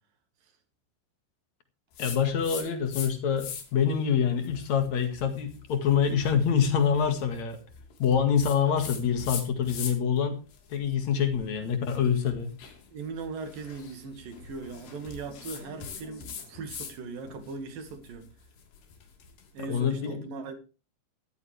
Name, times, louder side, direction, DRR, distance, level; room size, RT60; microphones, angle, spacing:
sound 1, 2.0-3.1 3.4-3.9 4.4-10.2 10.5-17.0 17.3-19.5, left 7 dB, 80° left, 4.7 m, -42 dB
voice 1, 2.0-7.6 8.0-10.4 10.7-12.5 19.6-20.2, left 7 dB, 50° left, 2.9 m, -26 dB
voice 2, 12.9-18.2 19.5-20.6, right 4 dB, 60° right, 3.6 m, -39 dB
14.5 x 13.5 x 3.4 m
omnidirectional pair, 4.6 m